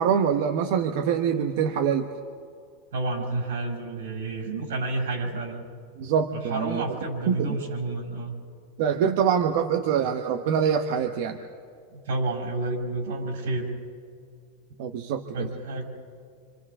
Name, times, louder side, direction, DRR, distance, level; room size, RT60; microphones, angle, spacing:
voice 1, 0.0-2.1 6.0-6.8 7.3-7.5 8.8-11.4 14.8-15.5, right 7 dB, 50° right, 5 dB, 1.0 m, -24 dB
voice 2, 2.9-5.6 6.3-8.3 11.9-13.6 15.3-15.8, right 2 dB, 80° right, 1 dB, 6.3 m, -30 dB
29.5 x 27.0 x 3.7 m, 2.3 s
supercardioid pair, 170°, 0 cm